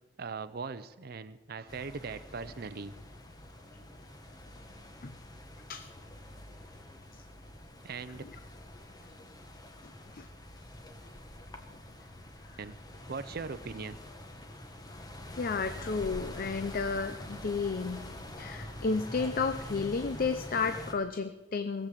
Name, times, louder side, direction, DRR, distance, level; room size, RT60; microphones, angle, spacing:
voice 1, 0.2-2.9 7.8-8.2 12.6-12.8 13.1-14.0, right 4 dB, 55° right, 11 dB, 0.6 m, -40 dB
sound 1, 1.7-20.9, left 1 dB, 20° left, 1.3 m, -46 dB
voice 2, 9.8-10.3 12.5-12.6 15.4-18.1 18.4-21.9, left 4 dB, 50° left, 9 dB, 0.6 m, -32 dB
17.5 x 8.1 x 7.4 m, 1.1 s
head